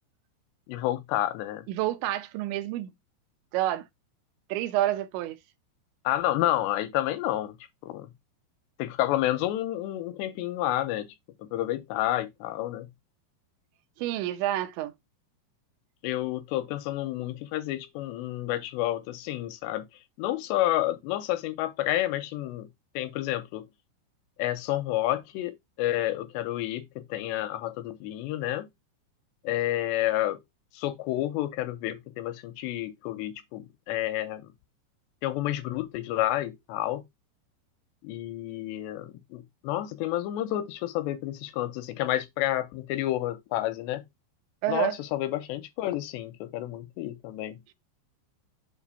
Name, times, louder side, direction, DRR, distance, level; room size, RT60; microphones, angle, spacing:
voice 1, 0.7-1.6 6.0-7.6 7.8-8.1 8.8-11.1 11.4-12.9 16.0-19.8 20.2-22.7 23.0-23.7 24.4-28.7 29.4-30.4 30.7-34.5 35.2-37.0 38.0-44.0 44.7-47.6, left 14 dB, 85° left, 2.8 m, -30 dB
voice 2, 1.7-2.9 3.5-3.9 4.5-5.4 14.0-14.9 44.6-45.0, right 14 dB, 90° right, 3.1 m, -28 dB
7.5 x 2.9 x 5.5 m
omnidirectional pair, 5.1 m